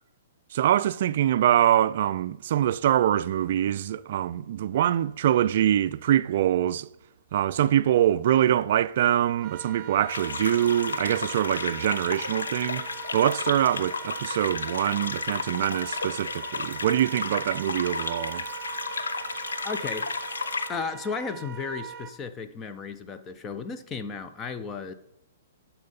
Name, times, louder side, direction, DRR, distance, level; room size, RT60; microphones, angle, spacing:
voice 1, 0.5-6.9 7.3-12.9 13.1-18.4, right 11 dB, 60° right, 0.3 m, -24 dB
Wind instrument woodwind instrument, 9.4-22.1, right 9 dB, 35° right, 0.7 m, -41 dB
sound 1, 10.1-20.7, left 4 dB, 90° left, 0.8 m, -33 dB
voice 2, 19.6-20.1 20.7-24.9, left 5 dB, 20° left, 0.7 m, -34 dB
12.0 x 4.5 x 5.4 m
hypercardioid pair, 135°, 0 cm